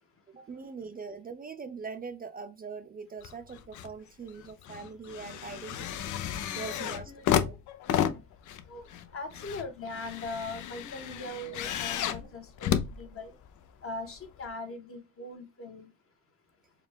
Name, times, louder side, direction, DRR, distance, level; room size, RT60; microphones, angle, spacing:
voice 1, 0.3-6.1 6.5-7.6, right 5 dB, 30° right, 0.5 m, -42 dB
sound 1, 3.2-3.9 4.3-13.7 14.4-14.5, left 10 dB, 75° left, 0.6 m, -33 dB
voice 2, 5.8-7.2 8.7-13.4 13.8-15.9, left 2 dB, 45° left, 1.4 m, -41 dB
4.9 x 2.3 x 3.3 m
cardioid pair, 90°, 30 cm